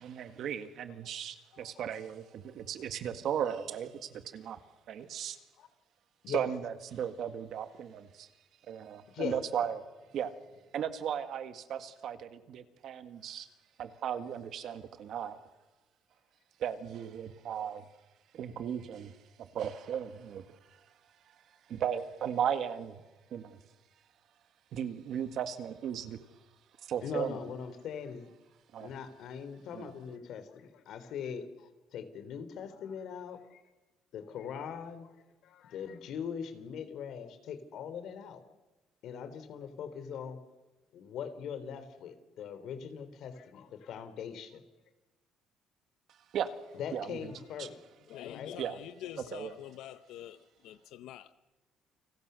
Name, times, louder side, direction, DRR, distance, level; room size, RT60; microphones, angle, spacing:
voice 1, 0.0-4.6 4.9-5.4 6.3-8.3 8.7-9.8 10.1-10.3 10.7-13.5 13.8-15.4 16.6-17.9 18.3-20.5 21.7-23.0 23.3-23.6 24.7-26.2 26.8-27.4 28.7-28.9 29.7-29.9 46.3-46.5 46.9-47.3 47.6-47.7 48.6-48.8 49.3-49.5, right 9 dB, 50° right, 1.9 m, -36 dB
voice 2, 9.1-9.4 27.0-28.3 28.8-33.6 34.1-35.1 35.4-38.4 39.0-40.4 40.9-44.6 46.7-47.7 48.2-48.5, left 7 dB, 55° left, 3.2 m, -41 dB
voice 3, 48.1-51.3, left 12 dB, 70° left, 0.9 m, -46 dB
30.0 x 25.5 x 6.8 m
cardioid pair, 180°, 0 cm